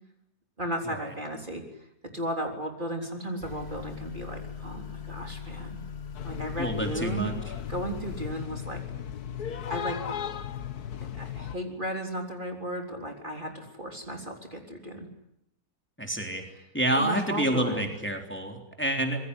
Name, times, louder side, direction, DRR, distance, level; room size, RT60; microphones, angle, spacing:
voice 1, 0.6-1.6 2.1-5.8 6.2-7.3 7.7-8.8 9.7-10.0 11.1-15.1 17.0-17.9, right 1 dB, 30° right, 3 dB, 3.9 m, -35 dB
Motor vehicle (road) / Accelerating revving vroom, 3.4-8.4, left 6 dB, 45° left, 1.4 m, -41 dB
sound 1, 6.1-11.6, left 9 dB, 75° left, 1.9 m, -36 dB
voice 2, 6.6-7.3 16.0-16.4 16.7-19.2, right 1 dB, 5° left, 3 dB, 3.6 m, -28 dB
26.0 x 22.0 x 9.9 m, 0.79 s
omnidirectional pair, 1.6 m